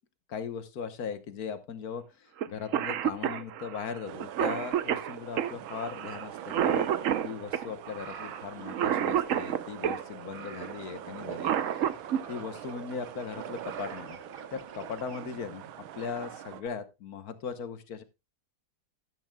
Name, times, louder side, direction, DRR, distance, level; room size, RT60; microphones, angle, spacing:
voice 1, 0.3-6.9 7.2-11.5 12.3-14.2 14.5-18.0, left 6 dB, 55° left, 11 dB, 1.4 m, -38 dB
Cough, 2.4-2.5 2.7-10.0 11.2-12.2 13.8-13.9 15.0-15.3 15.7-15.8 16.2-16.7, right 9 dB, 70° right, 0.7 m, -30 dB
sound 1, 4.1-16.6, right 11 dB, 90° right, 1.6 m, -43 dB
sound 2, 7.2-15.2, right 5 dB, 50° right, 1.5 m, -49 dB
12.5 x 12.0 x 2.3 m, 0.25 s
omnidirectional pair, 2.2 m